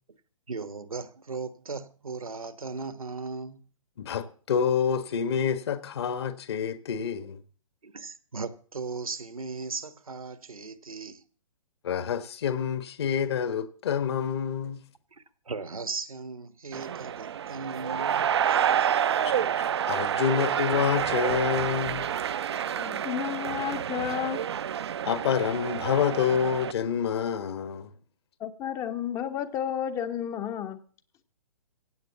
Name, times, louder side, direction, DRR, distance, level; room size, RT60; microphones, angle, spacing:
voice 1, 0.5-3.6 7.8-11.2 15.1-18.9, right 4 dB, 75° right, 1.3 m, -37 dB
voice 2, 4.0-7.4 11.8-14.8 19.2-19.5 19.9-22.0 25.0-27.9, left 7 dB, 45° left, 1.4 m, -27 dB
sound 1, 16.7-26.7, right 9 dB, 50° right, 0.6 m, -28 dB
voice 3, 22.8-24.5 28.4-30.8, left 9 dB, 15° left, 0.8 m, -32 dB
16.0 x 8.5 x 6.9 m
figure-of-eight pair, 125°, 18 cm